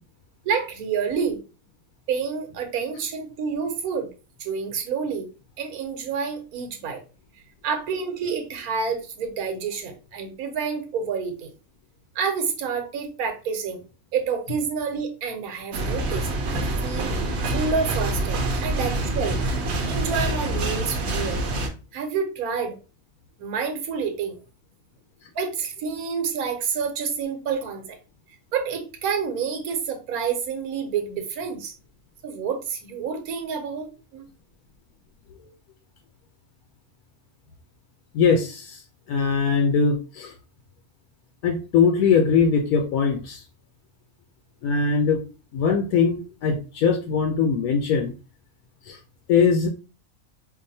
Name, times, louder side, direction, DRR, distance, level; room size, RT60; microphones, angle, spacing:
voice 1, 0.4-1.4 2.1-4.1 4.4-5.3 5.6-7.0 7.6-11.5 12.1-13.8 14.1-17.1 17.5-19.4 19.8-21.4 21.9-22.8 23.4-24.3 25.3-28.0 28.5-31.7 32.2-34.3, right 6 dB, 85° right, 5 dB, 1.3 m, -28 dB
sound 1, 15.7-21.7, right 2 dB, 55° right, 0.9 m, -26 dB
voice 2, 38.1-38.8 39.1-40.3 41.4-43.4 44.6-45.2 45.5-48.1 48.9-49.0 49.3-49.7, left 5 dB, 85° left, 3 dB, 1.1 m, -21 dB
4.6 x 2.6 x 2.6 m, 0.33 s
omnidirectional pair, 1.5 m